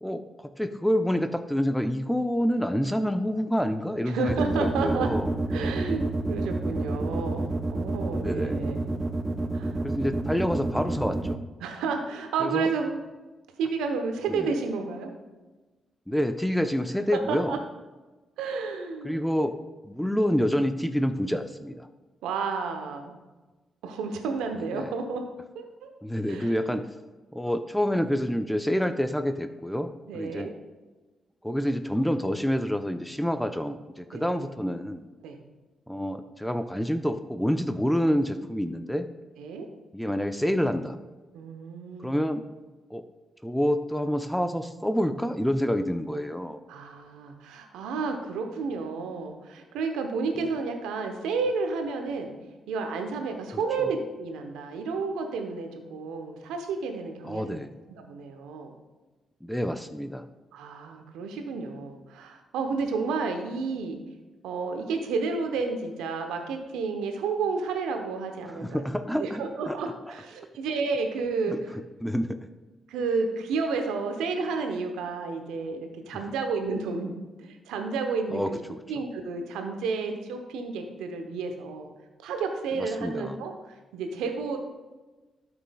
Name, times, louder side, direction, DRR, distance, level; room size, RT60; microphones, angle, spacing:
voice 1, 0.0-5.4 8.2-8.6 9.8-11.4 12.4-12.7 14.3-14.5 16.1-17.6 19.0-19.6 19.8-21.9 24.5-24.9 26.0-26.9 27.3-30.5 31.4-35.1 35.9-39.1 39.9-41.0 42.0-42.4 42.9-43.1 43.4-46.6 50.4-50.5 53.5-53.9 57.2-57.7 59.4-60.2 68.5-69.4 69.7-69.8 71.5-71.6 72.0-72.4 78.3-78.8 83.0-83.4, equal, 5° left, 8 dB, 0.6 m, -28 dB
voice 2, 4.1-5.1 5.5-8.9 9.5-9.8 11.6-13.0 13.6-15.1 17.1-17.6 18.4-19.2 22.2-23.2 23.8-25.2 25.5-25.9 26.3-26.8 30.1-30.5 34.1-34.3 35.2-35.4 39.4-39.7 41.3-42.2 46.7-52.3 52.7-57.6 57.9-58.7 60.5-64.0 64.4-68.8 69.1-71.7 72.9-78.6 78.9-81.9 82.2-84.6, right 4 dB, 80° right, 5 dB, 0.9 m, -31 dB
sound 1, 4.3-11.3, right 2 dB, 30° right, 0.8 m, -28 dB
12.5 x 6.1 x 2.3 m, 1.2 s
hypercardioid pair, 40°, 0 cm